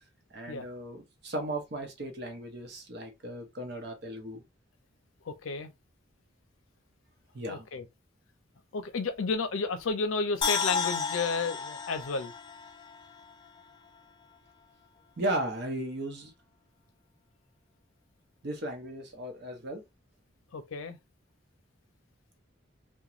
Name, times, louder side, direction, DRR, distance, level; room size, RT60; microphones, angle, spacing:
voice 1, 0.3-4.4 7.3-7.7 15.2-16.3 18.4-19.8, right 1 dB, 55° right, 0.8 m, -36 dB
voice 2, 5.3-5.7 7.5-7.8 8.7-12.3 20.5-21.0, left 4 dB, 85° left, 0.5 m, -32 dB
sound 1, 10.4-13.6 14.0-14.1, left 5 dB, 25° left, 0.3 m, -33 dB
3.0 x 2.2 x 2.4 m
head